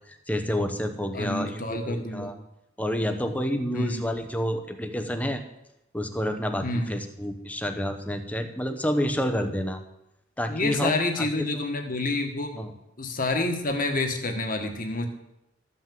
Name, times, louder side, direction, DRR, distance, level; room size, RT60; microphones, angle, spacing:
voice 1, 0.1-2.4 2.8-5.4 5.9-9.8 10.4-11.7 12.6-12.7, equal, 10° left, 7 dB, 0.9 m, -29 dB
voice 2, 1.1-2.3 3.7-4.1 6.6-6.9 10.5-12.7 13.0-15.1, left 2 dB, 45° left, 4 dB, 1.5 m, -28 dB
13.5 x 5.8 x 7.6 m, 0.88 s
head